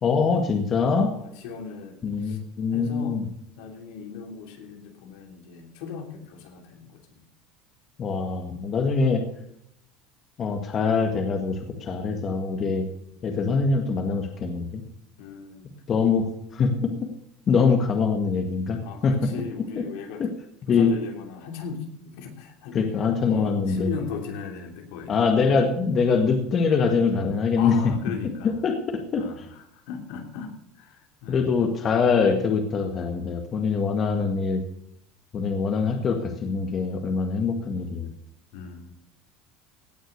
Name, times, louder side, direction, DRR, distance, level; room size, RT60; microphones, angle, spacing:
voice 1, 0.0-1.1 2.0-3.3 8.0-9.2 10.4-12.9 13.2-14.8 15.9-16.3 16.5-17.1 17.5-19.4 19.8-19.9 20.2-20.3 20.7-20.9 22.7-23.9 25.1-27.8 28.6-29.5 31.3-34.6 35.3-38.1, left 5 dB, 35° left, 4 dB, 1.7 m, -23 dB
voice 2, 1.1-2.4 2.7-3.2 3.6-7.2 15.2-16.1 18.8-20.2 20.7-22.8 23.3-25.2 27.6-28.5 29.1-31.6 38.5-38.9, left 6 dB, 80° left, 4 dB, 3.0 m, -38 dB
17.5 x 6.4 x 6.7 m, 0.73 s
cardioid pair, 135°, 0 cm